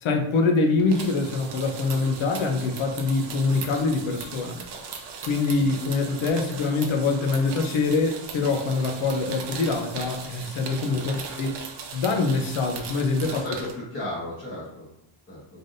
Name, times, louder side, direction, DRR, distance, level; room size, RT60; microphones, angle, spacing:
voice 1, 0.0-4.6 5.3-11.5 11.9-13.4, left 3 dB, 80° left, 4 dB, 0.7 m, -24 dB
sound 1, 0.8-13.7, right 5 dB, 60° right, 0.7 m, -39 dB
voice 2, 10.8-11.2 13.3-14.9 15.3-15.4, left 1 dB, 25° left, -9 dB, 1.1 m, -35 dB
3.8 x 3.5 x 2.6 m, 0.79 s
wide cardioid pair, 155°, 48 cm